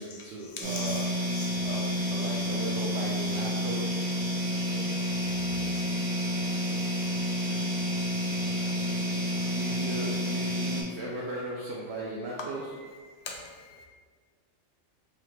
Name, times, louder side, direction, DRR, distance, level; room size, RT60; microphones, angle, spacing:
voice 1, 0.0-1.4 1.6-3.8 8.8-12.7, right 1 dB, 65° right, -4 dB, 0.8 m, -38 dB
voice 2, 0.6-1.0 1.4-1.5 13.3-13.9, left 4 dB, 60° left, 0 dB, 0.8 m, -40 dB
sound 1, 0.6-10.8, equal, 35° right, 0.3 m, -29 dB
3.9 x 2.9 x 3.2 m, 1.5 s
omnidirectional pair, 1.4 m